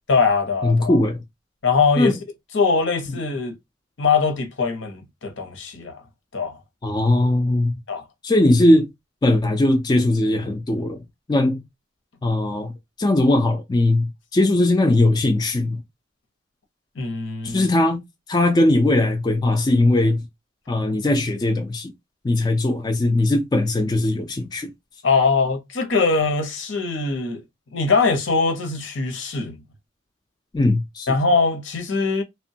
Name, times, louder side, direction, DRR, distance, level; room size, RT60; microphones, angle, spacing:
voice 1, 0.1-1.0 1.6-2.2 2.5-3.6 4.0-6.0 6.3-6.6 7.9-8.0 17.0-17.7 25.0-27.4 27.7-29.6 31.1-32.2, left 4 dB, 75° left, 0.8 m, -22 dB
voice 2, 0.6-1.2 2.0-2.2 3.1-3.2 6.8-7.8 8.2-8.9 9.2-11.0 11.3-11.6 12.2-12.7 13.0-15.8 17.4-18.0 18.3-20.2 20.7-21.9 22.2-24.7 30.5-31.1, left 1 dB, 20° left, 0.3 m, -19 dB
3.0 x 2.1 x 2.6 m
head